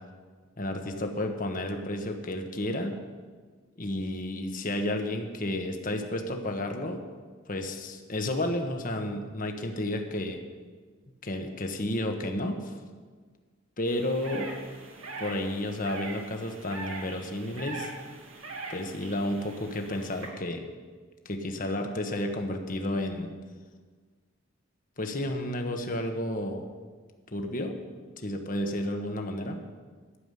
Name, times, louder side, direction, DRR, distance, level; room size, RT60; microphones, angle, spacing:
voice 1, 0.6-3.0 3.8-7.0 7.5-10.4 11.2-12.8 13.8-14.5 15.2-17.9 18.7-20.6 21.2-23.3 25.0-26.6 27.3-27.8 28.2-29.6, left 1 dB, 40° left, 4 dB, 1.4 m, -31 dB
sound 1, 13.9-20.3, right 3 dB, 70° right, 2.5 m, -42 dB
13.0 x 7.2 x 9.9 m, 1.5 s
head